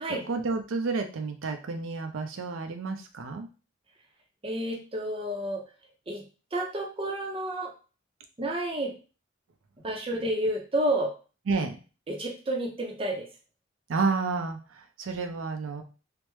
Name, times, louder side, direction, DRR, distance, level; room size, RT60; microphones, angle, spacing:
voice 1, 0.1-3.5 11.5-11.8 13.9-15.8, right 4 dB, 80° right, 5 dB, 0.4 m, -30 dB
voice 2, 4.4-5.6 6.1-6.2 6.5-7.7 8.4-8.9 9.8-11.1 12.1-13.3, right 1 dB, 25° right, 1 dB, 0.5 m, -30 dB
3.3 x 2.0 x 3.0 m, 0.34 s
head